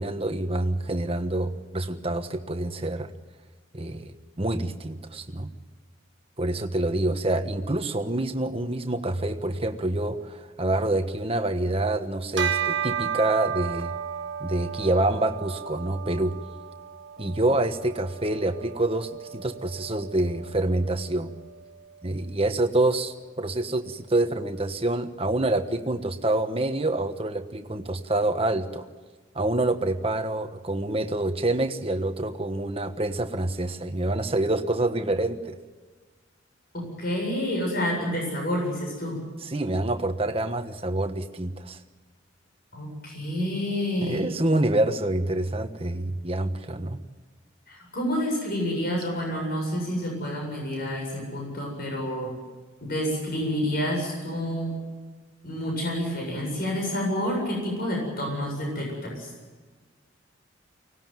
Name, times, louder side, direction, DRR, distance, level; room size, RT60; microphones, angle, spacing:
voice 1, 0.0-3.1 3.7-5.5 6.4-13.9 14.4-16.4 17.2-21.3 22.0-28.8 29.3-35.6 39.4-41.8 44.0-47.0, right 2 dB, 30° right, 7 dB, 1.4 m, -27 dB
Bell, 12.4-22.0, right 8 dB, 60° right, 1.4 m, -34 dB
voice 2, 36.7-39.2 42.7-44.2 47.7-52.3 52.8-54.7 55.4-59.3, equal, 50° left, 0 dB, 7.9 m, -29 dB
24.5 x 19.0 x 9.4 m, 1.4 s
head